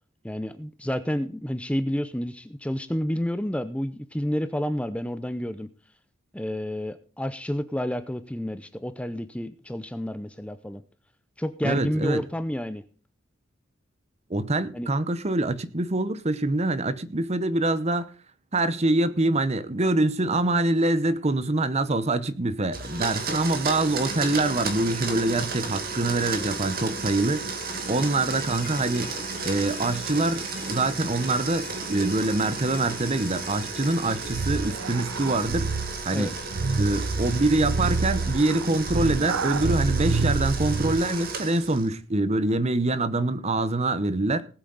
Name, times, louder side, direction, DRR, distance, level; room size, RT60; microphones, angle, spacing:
voice 1, 0.2-5.7 6.3-10.8 11.4-12.8 14.7-14.9 27.9-28.0 36.1-36.3, equal, 5° left, 0.6 m, -30 dB
voice 2, 11.6-12.2 14.3-18.1 18.5-29.2 29.4-35.7 36.0-36.3 36.8-44.4, right 2 dB, 35° right, 0.9 m, -25 dB
Domestic sounds home sounds, 22.7-41.9, right 4 dB, 50° right, 2.4 m, -34 dB
sound 1, 27.7-35.6, left 5 dB, 45° left, 3.2 m, -45 dB
sound 2, 34.3-41.1, right 4 dB, 90° right, 0.7 m, -28 dB
19.0 x 8.2 x 4.1 m
head